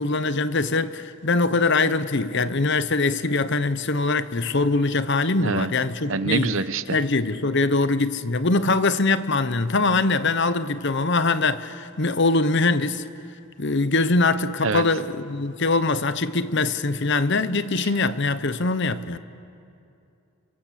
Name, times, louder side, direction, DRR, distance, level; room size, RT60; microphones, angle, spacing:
voice 1, 0.0-6.5 6.9-13.0 13.6-19.2, left 3 dB, 50° left, 0.9 m, -22 dB
voice 2, 6.1-6.8 14.6-14.8, right 4 dB, 60° right, 0.9 m, -25 dB
29.5 x 24.5 x 7.5 m
head